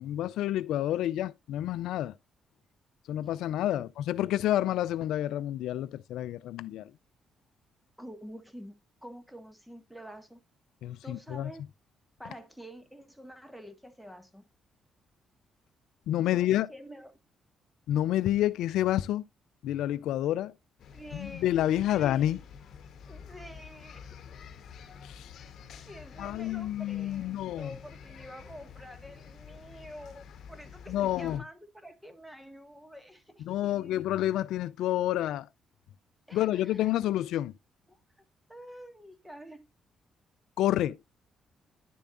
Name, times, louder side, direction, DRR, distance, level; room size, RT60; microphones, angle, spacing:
voice 1, 0.0-2.1 3.1-6.9 10.8-11.5 16.1-16.7 17.9-19.2 19.6-20.5 21.1-22.4 25.0-25.3 26.2-27.7 30.9-31.4 33.5-35.5 36.3-37.5 40.6-41.1, left 13 dB, 85° left, 0.4 m, -29 dB
voice 2, 8.0-8.7 9.0-10.4 11.0-11.6 12.2-14.4 16.2-17.2 20.9-21.5 21.8-22.3 23.1-24.2 25.9-34.0 36.3-37.0 37.9-38.0 38.5-39.6, equal, 5° right, 1.7 m, -48 dB
sound 1, 20.8-31.4, left 6 dB, 65° left, 1.1 m, -49 dB
10.5 x 7.0 x 2.5 m
cardioid pair, 90°, 0 cm